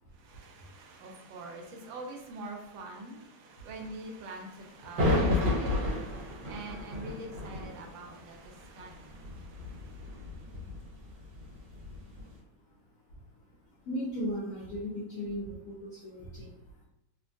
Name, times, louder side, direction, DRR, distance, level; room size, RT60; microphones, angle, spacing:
voice 1, 0.2-10.3, right 2 dB, 85° right, 2 dB, 1.3 m, -45 dB
sound 1, 4.8-12.3, left 2 dB, 70° right, 1.5 m, -32 dB
voice 2, 10.9-11.6 12.7-12.8 13.1-16.8, equal, 80° left, -4 dB, 0.7 m, -38 dB
3.2 x 2.1 x 2.5 m, 0.90 s
omnidirectional pair, 2.0 m